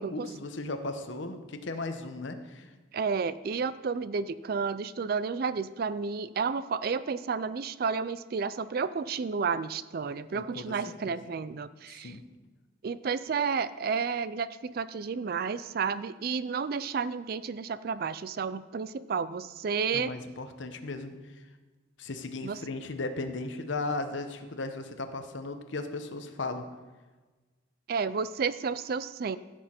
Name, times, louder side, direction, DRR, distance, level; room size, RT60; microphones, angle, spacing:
voice 1, 0.0-2.7 10.3-10.7 11.1-11.2 11.9-12.2 19.9-21.1 22.0-26.7, left 2 dB, 65° left, 8 dB, 0.9 m, -36 dB
voice 2, 2.9-12.1 12.8-20.1 22.4-22.6 27.9-29.4, right 5 dB, 50° right, 15 dB, 0.3 m, -31 dB
15.0 x 6.3 x 4.4 m, 1.3 s
head